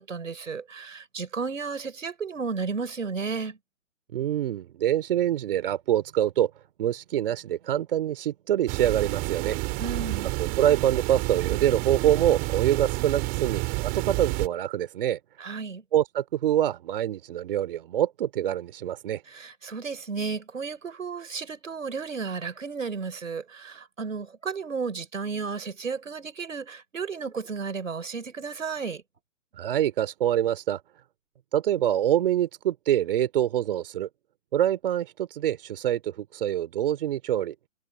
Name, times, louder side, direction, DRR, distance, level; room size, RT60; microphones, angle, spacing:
voice 1, 0.0-3.6 9.8-10.3 15.4-15.8 19.3-29.0, right 5 dB, 75° right, 4.7 m, -33 dB
voice 2, 4.1-6.5 6.8-9.6 10.4-15.2 15.9-19.2 29.6-30.8 31.5-34.1 34.5-37.5, right 11 dB, 45° right, 3.0 m, -25 dB
sound 1, 8.7-14.5, right 27 dB, 25° right, 3.1 m, -29 dB
figure-of-eight pair, 140°, 39 cm